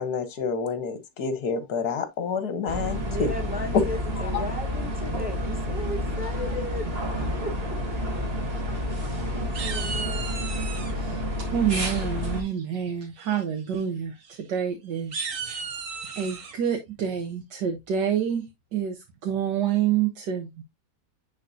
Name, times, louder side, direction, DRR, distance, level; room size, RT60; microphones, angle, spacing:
voice 1, 0.0-3.3 3.7-3.8 4.3-4.4, left 5 dB, 65° left, 1.7 m, -28 dB
sound 1, 2.7-12.4, left 1 dB, 35° right, 1.7 m, -29 dB
voice 2, 3.0-6.9 7.4-7.8 9.3-10.5, equal, 5° right, 1.1 m, -36 dB
sound 2, 8.6-9.2 9.5-10.9 12.4-12.8 13.2-13.4 13.7-13.8 14.2-14.4 15.0-16.5, right 5 dB, 50° right, 1.4 m, -35 dB
voice 3, 10.9-15.3 16.2-18.4 18.7-20.6, right 8 dB, 80° right, 1.7 m, -28 dB
9.8 x 4.0 x 2.7 m
omnidirectional pair, 1.9 m